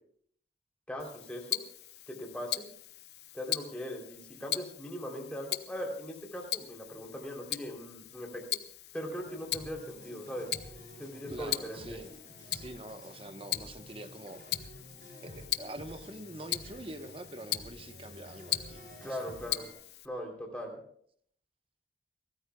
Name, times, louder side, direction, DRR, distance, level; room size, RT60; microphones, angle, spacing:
voice 1, 0.9-1.6 2.1-2.7 3.3-8.4 8.9-10.5 11.0-12.0 19.0-19.7 20.0-20.8, equal, 5° left, 0 dB, 3.4 m, -40 dB
Tick-tock, 1.0-20.1, left 14 dB, 70° left, 0.8 m, -40 dB
sound 1, 9.1-19.7, equal, 50° right, 5.9 m, -50 dB
voice 2, 11.3-12.1 12.5-14.6 15.2-19.3, right 1 dB, 30° right, 8 dB, 1.1 m, -45 dB
30.0 x 13.5 x 2.3 m, 0.62 s
head